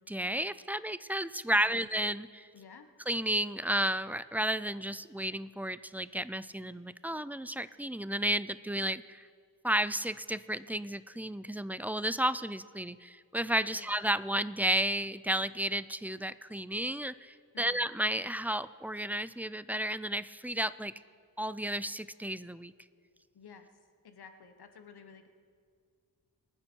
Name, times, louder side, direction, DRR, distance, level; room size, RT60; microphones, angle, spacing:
voice 1, 0.1-2.5 3.1-9.3 9.6-20.9 21.4-22.7, right 1 dB, 5° right, 16 dB, 0.3 m, -32 dB
voice 2, 1.5-1.9 2.5-2.9 13.7-13.9 17.5-17.8 23.3-23.7 24.0-25.3, left 6 dB, 80° left, 8 dB, 1.2 m, -53 dB
24.5 x 9.8 x 4.6 m, 2.1 s
wide cardioid pair, 95°, 38 cm